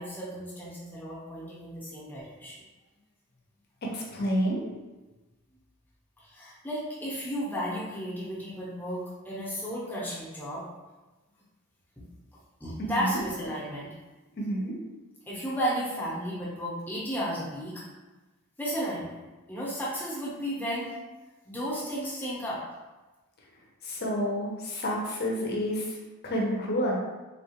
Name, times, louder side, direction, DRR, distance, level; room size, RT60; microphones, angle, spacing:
voice 1, 0.0-2.6 6.2-10.6 12.0-12.1 12.6-13.9 15.3-17.8 18.6-19.2 19.5-20.9 21.4-22.6, equal, 10° left, -7 dB, 0.8 m, -33 dB
voice 2, 3.9-4.6 12.8-13.2 14.4-14.7 23.8-25.9 26.2-26.9, equal, 45° left, -2 dB, 0.7 m, -29 dB
3.5 x 2.4 x 2.9 m, 1.2 s
head